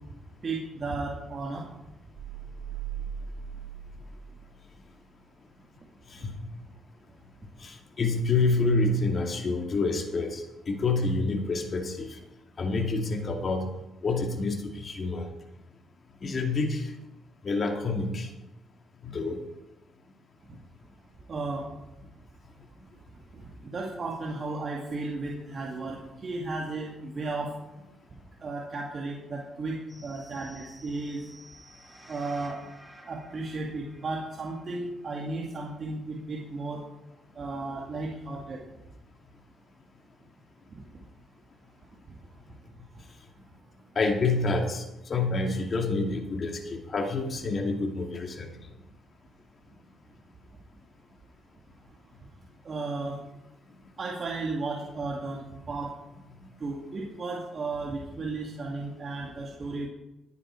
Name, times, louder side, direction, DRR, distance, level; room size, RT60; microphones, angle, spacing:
voice 1, 0.4-1.7 21.3-21.7 23.6-27.5 28.4-31.2 32.1-32.6 33.1-36.8 37.4-38.6 52.6-53.2 54.0-55.9 56.6-59.9, right 3 dB, 40° right, -2 dB, 2.1 m, -34 dB
sound 1, 2.1-4.7 5.0-5.2, right 8 dB, 60° right, 5.3 m, -39 dB
voice 2, 7.6-12.2 12.6-13.7 14.0-15.3 16.2-16.9 17.4-18.3 19.0-19.4 44.0-48.5, left 3 dB, 45° left, 4 dB, 2.1 m, -28 dB
sound 2, 29.9-35.2 35.7-35.8, right 1 dB, 10° right, 3.7 m, -53 dB
16.5 x 9.7 x 4.5 m, 0.95 s
cardioid pair, 90°, 0 cm